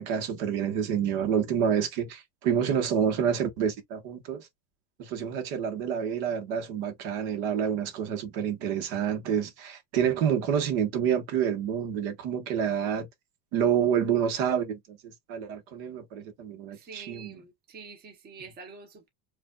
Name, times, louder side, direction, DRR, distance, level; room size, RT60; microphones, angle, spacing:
voice 1, 0.0-4.5 5.0-13.1 13.5-17.4, right 8 dB, 65° right, 1.4 m, -28 dB
voice 2, 16.7-19.1, right 5 dB, 25° right, 1.2 m, -46 dB
4.9 x 2.7 x 2.3 m
cardioid pair, 160°, 41 cm